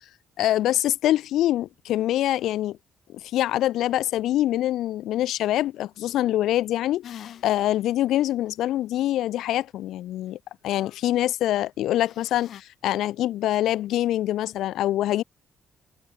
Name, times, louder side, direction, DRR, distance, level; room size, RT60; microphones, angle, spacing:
voice 1, 0.4-2.8 3.1-7.0 7.4-10.4 10.6-15.2, left 13 dB, 85° left, 1.9 m, -24 dB
sound 1, 7.0-7.7 8.2-8.3 12.0-12.6, left 10 dB, 60° left, 2.8 m, -43 dB
cardioid pair, 155°, 0 cm